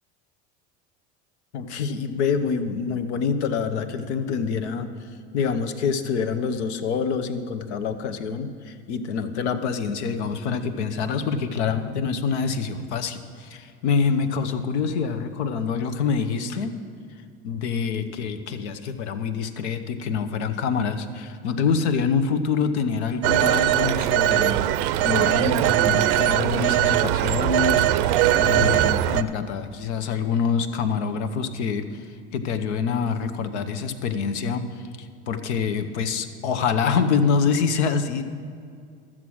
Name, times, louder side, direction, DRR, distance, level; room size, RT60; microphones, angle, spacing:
voice 1, 1.5-16.8 17.4-27.9 28.4-38.2, left 5 dB, 85° left, 9 dB, 0.9 m, -26 dB
Telephone, 23.2-29.2, right 12 dB, 70° right, 0.6 m, -20 dB
12.5 x 7.4 x 6.2 m, 2.3 s
supercardioid pair, 95°, 33 cm